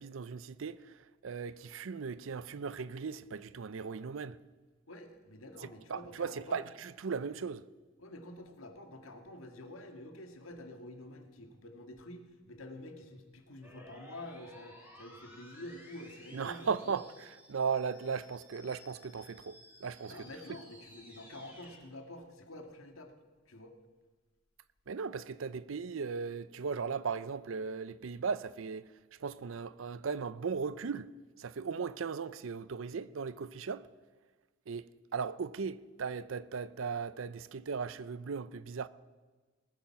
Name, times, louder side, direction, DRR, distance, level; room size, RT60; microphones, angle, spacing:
voice 1, 0.0-4.4 5.9-7.7 16.3-17.0 17.5-20.3 24.9-28.9 29.2-31.1 31.4-33.9 34.7-34.9 35.1-38.9, right 5 dB, 70° right, 0.5 m, -37 dB
voice 2, 4.9-6.6 8.0-17.0 20.0-23.1 23.5-23.8, left 1 dB, 90° left, 1.8 m, -48 dB
sound 1, 13.6-21.8, left 1 dB, 10° right, 3.7 m, -56 dB
19.5 x 8.9 x 5.8 m
head